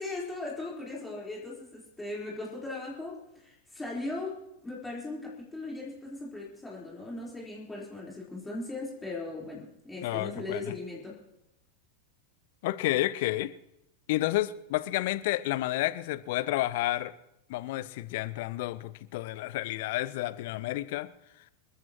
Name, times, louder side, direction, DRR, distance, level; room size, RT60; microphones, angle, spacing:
voice 1, 0.0-11.2, left 2 dB, 10° left, -5 dB, 4.0 m, -38 dB
voice 2, 10.0-10.7 12.6-13.5 14.1-17.1 17.5-21.1, left 16 dB, 50° left, 16 dB, 0.6 m, -30 dB
27.5 x 13.5 x 3.0 m, 0.84 s
figure-of-eight pair, 90°, 0 cm